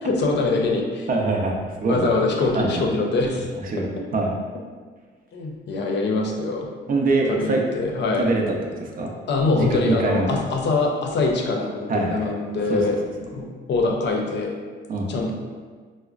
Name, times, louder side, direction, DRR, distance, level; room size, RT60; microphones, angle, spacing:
voice 1, 0.0-1.1 1.9-3.5 5.3-6.7 7.3-8.3 9.3-13.0 13.3-14.5 15.1-15.3, left 3 dB, 60° left, 1 dB, 0.6 m, -23 dB
voice 2, 1.1-2.1 2.5-2.8 3.6-3.9 4.1-4.3 6.9-7.6 8.1-9.1 9.5-10.4 11.9-12.3 12.7-12.8 14.9-15.1, right 2 dB, 45° right, 0 dB, 0.6 m, -23 dB
4.8 x 2.1 x 2.4 m, 1.5 s
cardioid pair, 90°, 20 cm